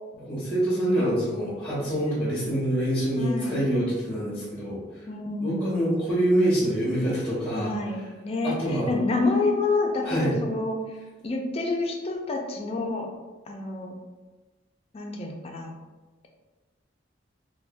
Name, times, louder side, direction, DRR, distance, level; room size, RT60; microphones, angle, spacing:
voice 1, 0.1-4.8 5.4-7.8 8.4-8.9 10.0-10.3, right 1 dB, 10° left, -7 dB, 0.7 m, -25 dB
voice 2, 3.2-3.6 5.1-5.8 7.5-10.8 11.2-13.1 13.5-13.9 14.9-15.8, left 3 dB, 30° left, 2 dB, 0.4 m, -28 dB
3.3 x 2.2 x 2.5 m, 1.2 s
head